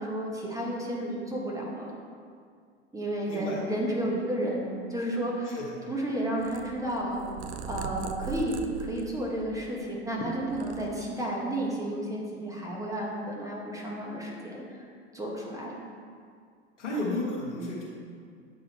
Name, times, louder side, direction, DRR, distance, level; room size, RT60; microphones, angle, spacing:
voice 1, 0.0-1.9 2.9-5.6 5.9-7.2 7.7-14.8 15.1-15.7, right 1 dB, 10° right, -3 dB, 1.5 m, -32 dB
voice 2, 3.3-3.6 5.5-5.8 16.8-17.9, left 1 dB, 85° left, -4 dB, 1.5 m, -32 dB
Purr, 6.4-9.9 10.3-11.4, right 7 dB, 70° right, 0.6 m, -40 dB
8.2 x 3.9 x 4.4 m, 2.1 s
hypercardioid pair, 85°, 35 cm